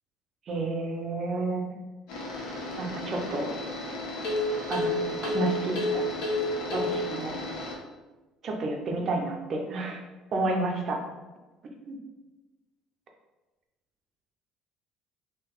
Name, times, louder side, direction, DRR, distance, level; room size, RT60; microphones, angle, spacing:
voice 1, 0.5-1.6 2.8-3.5 4.2-4.3 4.7-4.9 5.2-6.1 6.7-7.4 8.4-10.0 10.3-10.9 11.9-12.0, right 2 dB, 35° right, 2 dB, 0.6 m, -30 dB
sound 1, 2.1-7.7, left 2 dB, 85° left, 1.2 m, -31 dB
3.8 x 2.9 x 4.5 m, 1.2 s
cardioid pair, 180°, 0 cm